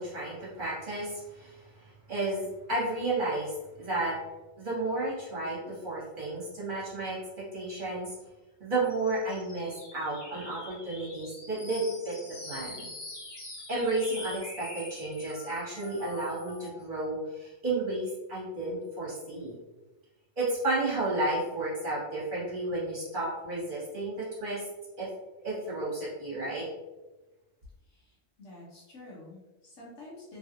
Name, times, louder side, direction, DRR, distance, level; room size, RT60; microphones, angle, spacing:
voice 1, 0.0-4.2 4.6-7.2 7.5-8.2 8.6-12.9 13.7-19.5 20.4-24.6 25.0-25.1 25.4-26.7, right 2 dB, 45° right, -8 dB, 1.3 m, -32 dB
sound 1, 8.8-16.8, left 2 dB, 45° left, 0.3 m, -45 dB
voice 2, 27.9-30.4, left 2 dB, 85° left, -6 dB, 1.1 m, -49 dB
3.0 x 2.4 x 2.8 m, 1.1 s
omnidirectional pair, 1.2 m